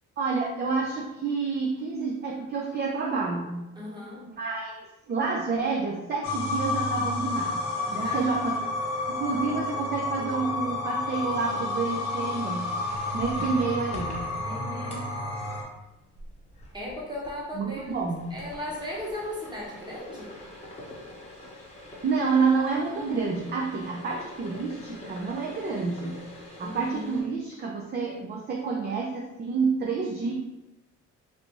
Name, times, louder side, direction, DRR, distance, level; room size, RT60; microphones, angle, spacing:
voice 1, 0.2-3.5 4.4-7.6 7.9-8.5 9.1-12.7 13.1-14.2 17.5-18.3 22.0-26.1 26.6-30.3, right 4 dB, 35° right, -1 dB, 0.5 m, -29 dB
voice 2, 3.7-4.3 7.8-8.3 14.4-15.1 16.7-18.0 18.3-20.3 26.6-27.2, left 1 dB, 15° right, -4 dB, 1.2 m, -37 dB
sound 1, 6.2-15.6, left 2 dB, 65° left, 1.1 m, -30 dB
sound 2, 12.9-27.2, left 1 dB, 20° left, 0.9 m, -46 dB
3.3 x 2.6 x 3.0 m, 0.97 s
cardioid pair, 90°, 30 cm